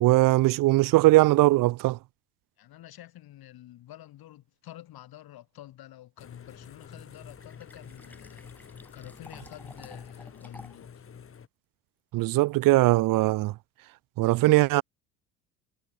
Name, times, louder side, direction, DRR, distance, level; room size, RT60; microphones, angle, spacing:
voice 1, 0.0-2.0 12.1-13.5 14.2-14.8, right 19 dB, 45° right, 0.8 m, -20 dB
voice 2, 2.6-8.4 8.9-11.1, left 14 dB, 50° left, 5.5 m, -49 dB
sound 1, 6.2-11.5, left 7 dB, 30° left, 2.5 m, -48 dB
Fill (with liquid), 7.0-11.0, left 1 dB, 5° left, 6.3 m, -52 dB
hypercardioid pair, 65°, 46 cm